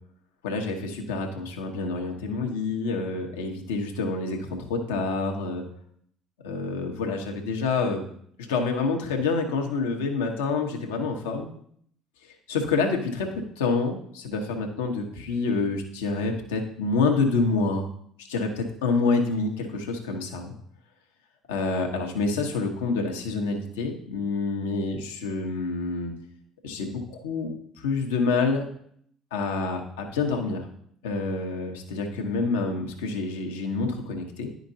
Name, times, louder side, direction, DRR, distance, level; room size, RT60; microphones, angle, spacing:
voice 1, 0.4-5.6 6.4-8.0 8.4-11.5 12.5-13.3 13.6-17.8 18.3-20.5 21.5-26.1 26.6-27.5 27.8-28.6 29.3-30.6 31.0-34.5, left 4 dB, 80° left, 3 dB, 1.0 m, -27 dB
10.5 x 5.0 x 2.7 m, 0.66 s
hypercardioid pair, 60°, 0 cm